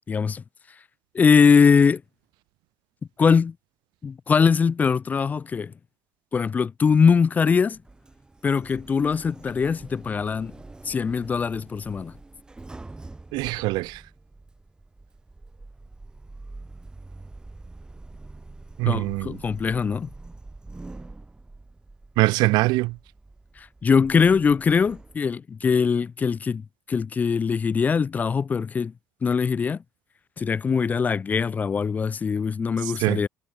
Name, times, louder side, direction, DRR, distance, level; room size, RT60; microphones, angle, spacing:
voice 1, 0.1-0.4 1.1-2.0 3.2-3.5 4.0-5.7 6.3-7.8 8.4-10.5 10.9-12.1 18.9-20.1 23.6-28.9 29.2-29.8 30.4-33.3, left 6 dB, 20° left, 0.3 m, -22 dB
Sliding door, 7.7-25.2, right 2 dB, 10° right, 1.9 m, -45 dB
voice 2, 13.3-14.0 18.8-19.4 22.2-22.9 33.0-33.2, right 22 dB, 70° right, 0.3 m, -22 dB
cardioid pair, 140°, 8 cm